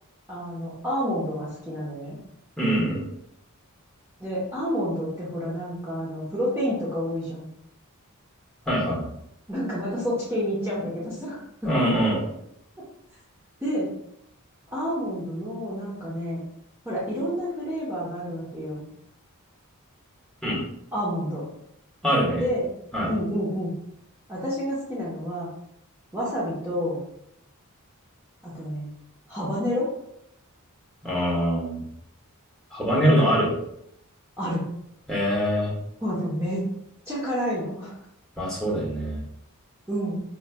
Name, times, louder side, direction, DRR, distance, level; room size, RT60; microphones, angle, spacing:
voice 1, 0.3-2.2 4.2-7.4 9.5-12.1 13.6-13.9 14.7-16.4 16.8-18.8 20.9-21.5 22.3-22.7 23.1-23.8 24.3-25.5 26.1-27.0 28.4-28.9 29.3-29.9 33.0-33.2 34.4-34.7 36.0-36.7 37.1-37.9 39.9-40.2, equal, 10° right, -9 dB, 0.9 m, -29 dB
voice 2, 2.6-3.0 8.7-9.1 11.6-12.2 20.4-20.6 22.0-22.4 22.9-23.1 31.0-31.8 32.7-33.5 35.1-35.7 38.4-39.2, equal, 5° left, -7 dB, 1.2 m, -23 dB
4.3 x 3.1 x 2.2 m, 0.75 s
head